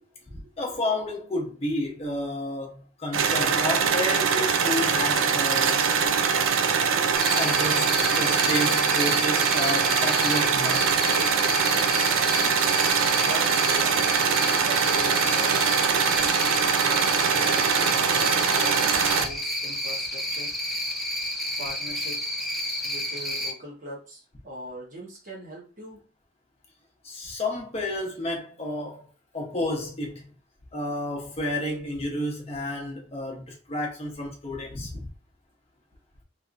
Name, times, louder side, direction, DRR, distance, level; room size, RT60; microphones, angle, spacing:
voice 1, 0.6-5.9 7.3-10.9 19.2-19.3 27.0-29.1 29.3-30.2 30.7-35.1, left 1 dB, 30° left, 0.8 m, -31 dB
sound 1, 3.1-19.2, right 6 dB, 75° right, 0.4 m, -23 dB
Cricket, 7.1-23.5, left 1 dB, ahead, 0.4 m, -30 dB
voice 2, 13.2-14.3 14.6-15.8 16.8-20.5 21.6-22.2 22.6-26.0, equal, 40° right, 1.2 m, -40 dB
3.2 x 2.8 x 2.5 m
head